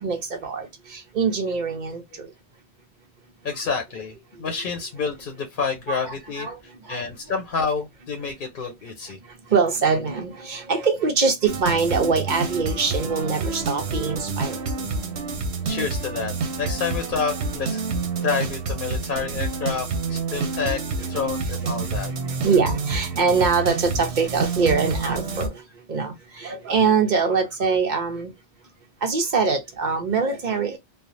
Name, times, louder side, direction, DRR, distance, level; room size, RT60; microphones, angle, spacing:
voice 1, 0.0-2.3 5.9-6.6 6.8-7.0 9.5-14.6 20.3-20.4 22.4-25.6 25.9-28.3 29.0-30.8, right 5 dB, 45° right, 1.0 m, -23 dB
voice 2, 3.4-6.5 6.9-9.2 15.6-17.9 18.2-20.8 21.1-22.1, left 5 dB, 55° left, 0.8 m, -28 dB
sound 1, 11.5-25.5, right 4 dB, 80° right, 1.0 m, -28 dB
3.3 x 2.0 x 2.6 m
omnidirectional pair, 1.1 m